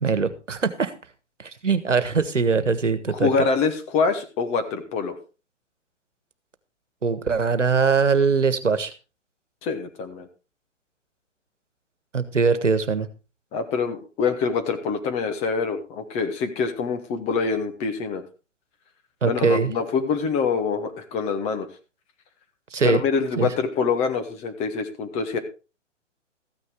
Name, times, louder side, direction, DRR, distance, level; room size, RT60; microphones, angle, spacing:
voice 1, 0.0-0.9 1.6-3.3 7.0-8.9 12.1-13.1 19.2-19.7 22.7-23.0 23.4-23.5, right 5 dB, 75° right, 12 dB, 1.4 m, -21 dB
voice 2, 3.1-5.2 9.6-10.3 13.5-18.2 19.3-21.7 22.8-25.4, left 5 dB, 15° left, 7 dB, 1.1 m, -25 dB
14.0 x 9.5 x 3.5 m, 0.31 s
figure-of-eight pair, 125°, 37 cm